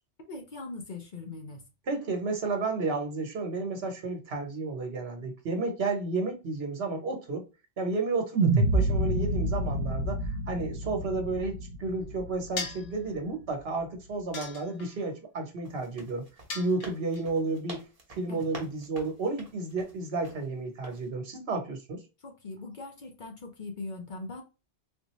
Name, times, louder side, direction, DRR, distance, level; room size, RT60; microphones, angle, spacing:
voice 1, 0.3-1.6 18.3-18.5 22.2-24.4, left 3 dB, 50° left, 0.7 m, -40 dB
voice 2, 1.9-7.4 7.8-10.2 10.5-16.2 16.5-22.0, right 3 dB, 60° right, 1.2 m, -32 dB
sound 1, 8.4-12.7, right 2 dB, 80° right, 1.0 m, -27 dB
sound 2, 12.6-13.0 14.3-15.1 16.5-17.2, left 4 dB, 75° left, 1.2 m, -37 dB
sound 3, 15.6-20.5 20.8-21.1, right 2 dB, 35° right, 1.0 m, -47 dB
3.5 x 2.5 x 3.0 m
omnidirectional pair, 1.2 m